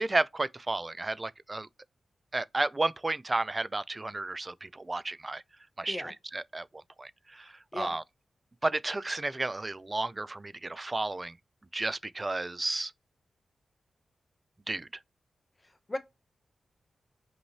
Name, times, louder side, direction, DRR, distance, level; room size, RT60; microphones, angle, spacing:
voice 1, 0.0-1.7 2.3-5.4 5.8-6.7 7.0-8.0 8.6-11.3 11.7-12.9 14.7-14.9, right 2 dB, 30° right, 0.3 m, -32 dB
voice 2, 5.9-6.1 7.7-8.0 15.9-16.0, left 2 dB, 25° left, 0.8 m, -35 dB
5.4 x 3.0 x 2.7 m
cardioid pair, 65°, 0 cm